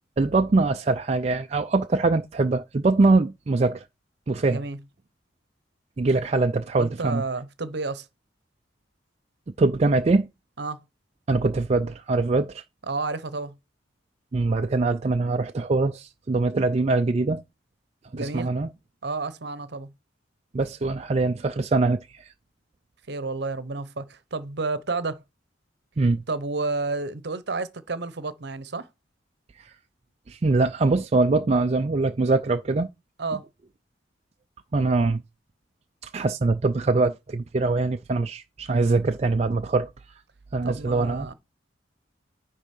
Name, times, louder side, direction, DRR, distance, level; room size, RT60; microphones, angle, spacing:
voice 1, 0.2-3.8 4.3-4.6 6.0-7.2 9.6-10.3 11.3-12.6 14.3-17.4 18.1-18.7 20.5-22.3 26.0-26.2 29.6-29.7 30.3-32.9 34.7-35.2 36.0-39.9 40.5-41.3, right 3 dB, 35° right, 0.4 m, -23 dB
voice 2, 6.8-8.1 10.6-10.8 12.9-13.5 18.1-18.5 19.0-19.9 23.1-25.2 26.3-28.9 33.2-33.4 40.6-41.3, right 3 dB, 60° right, 0.8 m, -30 dB
10.0 x 3.6 x 5.3 m
head